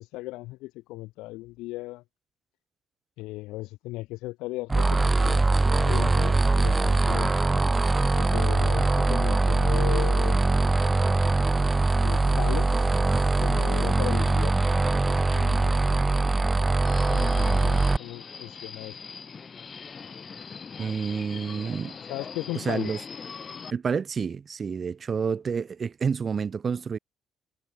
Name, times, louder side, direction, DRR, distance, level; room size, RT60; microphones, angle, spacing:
voice 1, 0.0-2.0 3.2-7.3 8.1-10.6 12.0-12.9 13.4-15.9 17.0-18.9 22.1-22.9, left 20 dB, 80° left, 4.3 m, -36 dB
sound 1, 4.7-18.0, right 3 dB, 25° right, 1.7 m, -22 dB
Subway metro underground, 16.8-23.7, left 5 dB, 45° left, 3.2 m, -41 dB
voice 2, 20.8-22.0 22.6-23.0 23.7-27.0, right 6 dB, 45° right, 2.3 m, -29 dB
hypercardioid pair, 55°, 0 cm